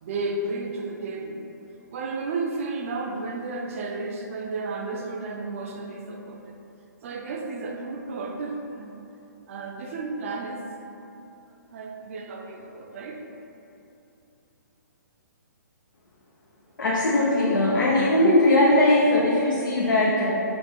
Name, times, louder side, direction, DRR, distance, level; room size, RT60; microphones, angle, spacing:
voice 1, 0.0-1.4 1.9-6.5 7.0-9.0 9.5-10.6 11.7-13.2, right 3 dB, 45° right, 2 dB, 0.5 m, -33 dB
voice 2, 16.8-20.3, left 1 dB, 90° left, -5 dB, 0.7 m, -20 dB
4.5 x 2.4 x 4.3 m, 2.9 s
hypercardioid pair, 150°, 10 cm